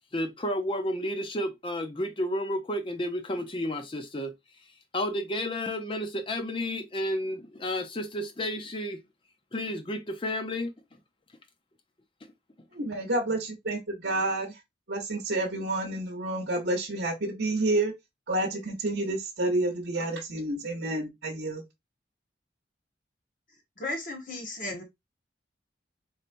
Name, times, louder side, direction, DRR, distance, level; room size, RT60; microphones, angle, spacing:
voice 1, 0.1-4.3 4.9-9.0 9.5-10.7, left 1 dB, 30° left, 0.6 m, -31 dB
voice 2, 12.7-14.6 14.9-17.9 18.3-21.6, right 2 dB, 65° right, 0.8 m, -29 dB
voice 3, 23.8-24.8, left 2 dB, 45° left, 1.3 m, -35 dB
4.3 x 3.2 x 2.5 m
head